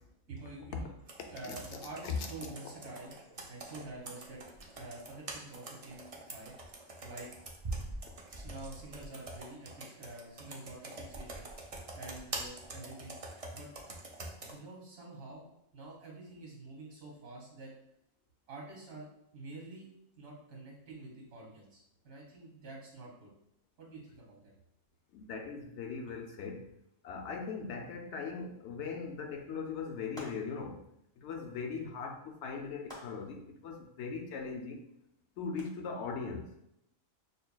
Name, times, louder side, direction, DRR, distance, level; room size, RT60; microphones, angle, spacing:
voice 1, 0.3-0.9 1.3-3.1 3.5-4.4 4.8-6.5 7.0-7.3 8.4-11.5 11.9-13.1 13.5-13.7 14.5-15.5 15.7-17.7 18.5-19.9 20.2-23.3 23.8-24.5, right 2 dB, 75° right, -2 dB, 1.7 m, -47 dB
Computer keyboard, 1.1-14.6, right 2 dB, 55° right, 0.3 m, -45 dB
voice 2, 25.1-26.7 27.0-30.8 31.2-34.9 35.4-36.5, left 5 dB, 65° left, 3 dB, 0.8 m, -39 dB
sound 1, 30.2-30.8 32.9-33.4 35.6-35.7, equal, 5° left, 0.8 m, -49 dB
6.6 x 2.2 x 2.2 m, 0.77 s
omnidirectional pair, 1.4 m